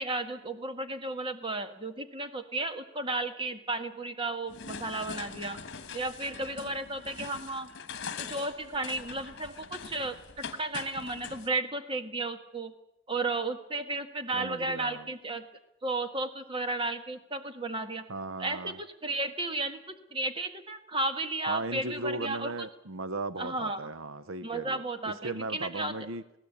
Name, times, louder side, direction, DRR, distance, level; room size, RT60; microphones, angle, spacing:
voice 1, 0.0-5.6 5.9-7.7 8.2-12.7 13.1-15.5 15.8-18.1 18.4-22.5 23.4-23.8 24.4-25.9, right 2 dB, 25° right, 1.6 m, -33 dB
sound 1, 4.5-11.5, left 5 dB, 55° left, 1.5 m, -43 dB
voice 2, 14.3-15.1 18.1-18.8 21.5-26.2, right 2 dB, 80° right, 0.8 m, -37 dB
21.5 x 17.0 x 8.5 m
head